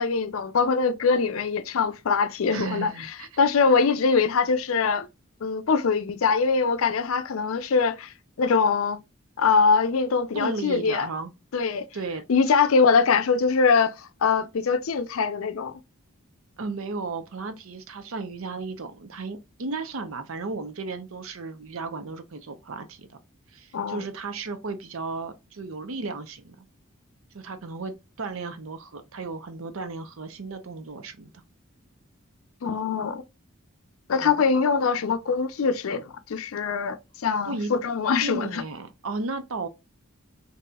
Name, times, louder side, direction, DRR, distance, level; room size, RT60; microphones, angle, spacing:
voice 1, 0.0-2.9 3.4-5.1 5.4-9.0 9.4-11.1 11.5-11.9 12.3-15.8 23.7-24.0 32.6-33.2 34.1-37.0 37.2-38.6, left 5 dB, 75° left, 0.5 m, -23 dB
voice 2, 2.5-3.4 10.3-11.3 11.9-12.2 16.6-23.2 23.5-26.6 27.3-31.3 34.2-34.3 37.4-37.7 38.2-39.7, right 3 dB, 70° right, 0.6 m, -34 dB
4.0 x 2.7 x 2.2 m
head